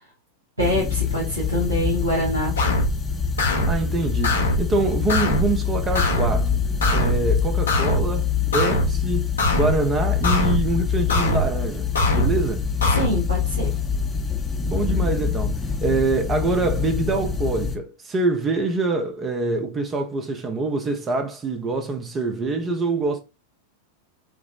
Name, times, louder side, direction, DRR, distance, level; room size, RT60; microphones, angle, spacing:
sound 1, 0.6-17.8, left 6 dB, 10° left, 0.7 m, -25 dB
voice 1, 0.6-2.5 12.9-13.7, equal, 80° right, 1.3 m, -25 dB
sound 2, 2.6-2.9 3.4-3.8 4.2-4.7 5.1-5.5 5.9-6.4 6.8-7.2 7.7-8.1 8.5-8.9 9.4-9.8 10.2-10.7 11.1-11.5 11.9-12.4 12.8-13.1, left 1 dB, 70° left, 0.8 m, -22 dB
voice 2, 3.7-6.6 6.9-12.6 14.7-23.2, right 2 dB, 25° right, 0.6 m, -25 dB
5.8 x 2.0 x 2.4 m
figure-of-eight pair, 90°, 0 cm